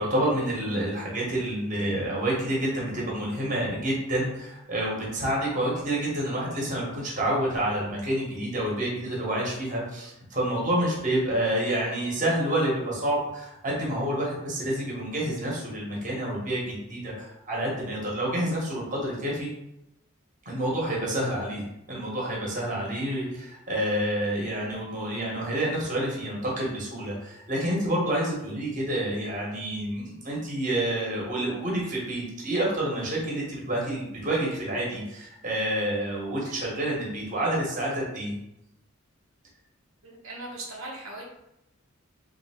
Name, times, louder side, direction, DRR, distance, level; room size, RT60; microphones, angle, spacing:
voice 1, 0.0-19.5 20.4-21.6 21.9-38.3, right 1 dB, 35° right, -3 dB, 1.1 m, -28 dB
voice 2, 40.0-41.2, right 2 dB, 85° right, -3 dB, 1.0 m, -39 dB
3.3 x 2.7 x 4.2 m, 0.85 s
head